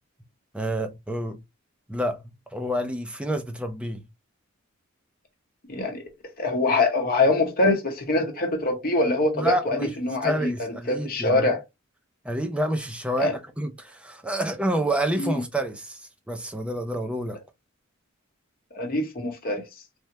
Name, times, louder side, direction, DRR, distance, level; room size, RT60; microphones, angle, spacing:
voice 1, 0.5-1.4 1.9-2.2 2.5-4.0 9.3-9.9 10.2-11.5 12.2-17.4, right 1 dB, 5° right, 0.4 m, -28 dB
voice 2, 5.7-6.0 6.4-11.6 13.2-13.3 15.2-15.3 18.7-19.6, left 2 dB, 45° left, 0.9 m, -24 dB
3.4 x 2.1 x 2.7 m
head